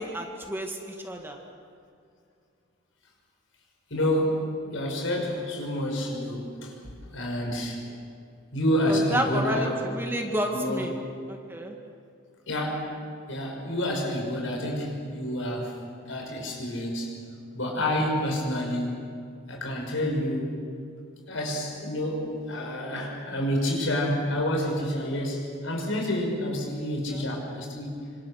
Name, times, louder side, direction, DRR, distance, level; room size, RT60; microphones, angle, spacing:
voice 1, 0.0-1.4 8.9-11.0 11.3-11.8 27.1-27.2, right 1 dB, 10° right, 2 dB, 2.0 m, -30 dB
voice 2, 3.9-7.8 8.5-9.9 10.5-11.0 12.5-12.9 13.3-15.8 16.1-17.1 17.5-19.0 19.5-20.6 21.3-28.0, left 1 dB, 80° left, 0 dB, 6.0 m, -28 dB
26.5 x 25.5 x 6.5 m, 2.4 s
head